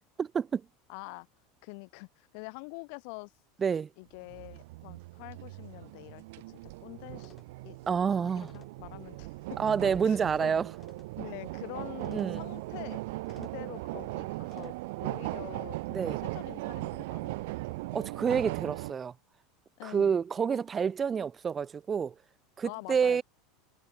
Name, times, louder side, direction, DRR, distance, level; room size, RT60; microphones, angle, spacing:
voice 1, 0.2-0.6 3.6-3.9 7.9-8.5 9.6-10.7 12.1-12.4 15.9-16.2 17.9-19.1 19.8-22.1 22.6-23.2, right 6 dB, 25° right, 0.9 m, -28 dB
voice 2, 0.9-1.3 1.6-3.3 4.0-7.3 7.6-9.6 10.0-10.6 11.2-13.0 13.3-14.8 15.0-17.5 19.8-20.1 22.6-23.2, left 36 dB, 55° left, 2.7 m, -46 dB
sound 1, 4.2-18.9, right 21 dB, 60° right, 0.7 m, -38 dB
sound 2, 7.1-14.7, left 6 dB, 25° left, 5.5 m, -61 dB
figure-of-eight pair, 80°, 0 cm